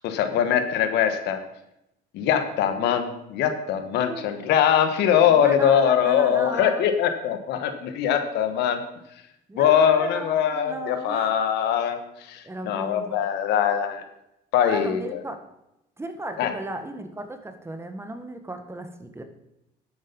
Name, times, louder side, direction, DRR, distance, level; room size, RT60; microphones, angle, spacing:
voice 1, 0.0-1.4 2.1-8.8 9.5-14.0 14.5-15.2 16.4-16.5, left 9 dB, 85° left, 8 dB, 1.5 m, -22 dB
voice 2, 4.0-4.3 5.2-6.8 9.5-11.3 12.4-13.2 14.6-15.4 16.0-19.2, right 2 dB, 15° right, 7 dB, 1.5 m, -36 dB
11.0 x 8.8 x 5.4 m, 0.85 s
cardioid pair, 110°, 17 cm